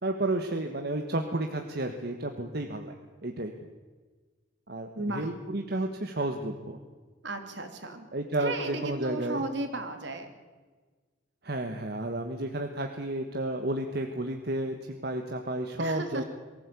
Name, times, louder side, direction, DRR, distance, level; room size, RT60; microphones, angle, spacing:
voice 1, 0.0-2.9 3.2-3.5 4.7-6.8 8.1-9.4 11.4-16.2, right 1 dB, 55° right, 4 dB, 1.5 m, -32 dB
voice 2, 5.0-5.3 7.2-8.1 8.4-10.3 15.8-16.2, right 2 dB, 70° right, 6 dB, 2.9 m, -34 dB
23.0 x 15.5 x 8.5 m, 1.4 s
head